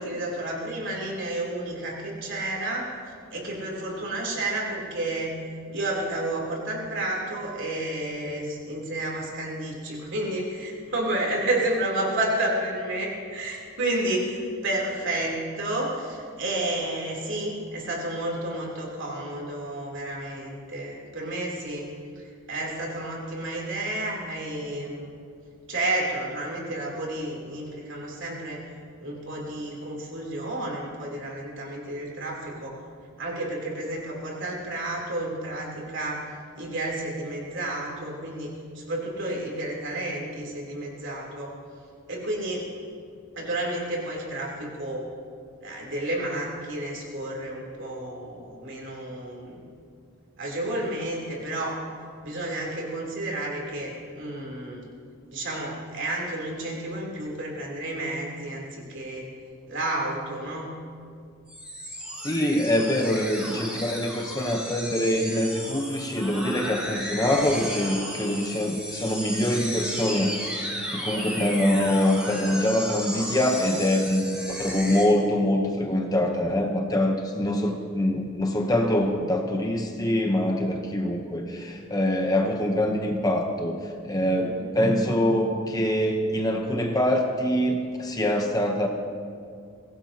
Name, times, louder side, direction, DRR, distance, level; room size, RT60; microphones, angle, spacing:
voice 1, 0.0-2.9 3.3-5.4 5.7-21.9 22.2-25.1 25.7-28.6 29.0-32.8 33.2-36.2 36.6-41.5 42.1-42.7 43.3-45.1 45.6-49.6 50.4-51.8 52.2-54.8 55.3-59.3 59.7-60.7, right 1 dB, 60° right, -2 dB, 3.6 m, -31 dB
sound 1, 61.5-75.0, equal, 5° right, 3.0 m, -34 dB
voice 2, 62.2-70.3 70.9-88.9, left 1 dB, 20° left, 3 dB, 1.0 m, -24 dB
23.0 x 17.0 x 3.0 m, 2.3 s
head